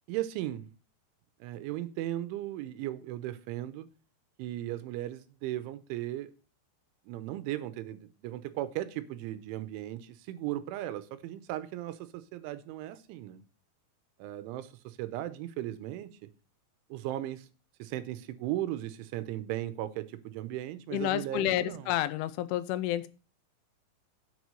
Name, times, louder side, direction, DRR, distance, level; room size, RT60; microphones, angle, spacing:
voice 1, 0.1-0.7 1.4-3.9 4.4-6.3 7.1-13.4 14.2-16.1 16.9-17.5 17.8-21.9, right 14 dB, 90° right, 3.2 m, -37 dB
voice 2, 20.9-23.1, left 13 dB, 85° left, 3.2 m, -30 dB
8.2 x 6.3 x 6.6 m
omnidirectional pair, 5.5 m